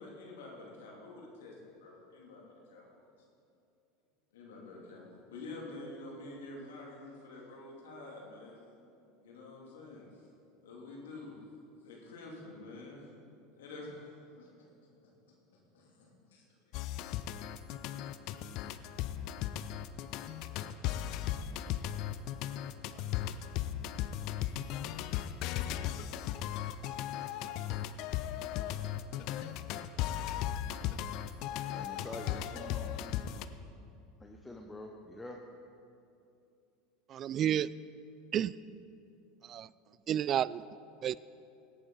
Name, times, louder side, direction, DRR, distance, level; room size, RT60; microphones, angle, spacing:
voice 1, 0.0-2.4 2.7-3.0 4.3-8.6 9.2-10.1 10.6-11.4 11.8-13.1 13.6-14.7 15.7-16.4 16.9-17.0, left 2 dB, 75° left, -3 dB, 2.6 m, -48 dB
sound 1, 16.7-33.5, left 11 dB, 55° left, 0.5 m, -36 dB
voice 2, 31.7-33.2 34.2-35.4, left 2 dB, 15° left, 2 dB, 0.9 m, -46 dB
voice 3, 37.1-37.7 38.3-38.5 39.4-39.7 40.1-40.6 41.0-41.2, right 10 dB, 40° right, 20 dB, 0.3 m, -30 dB
17.5 x 8.9 x 4.0 m, 2.7 s
hypercardioid pair, 80°, 0 cm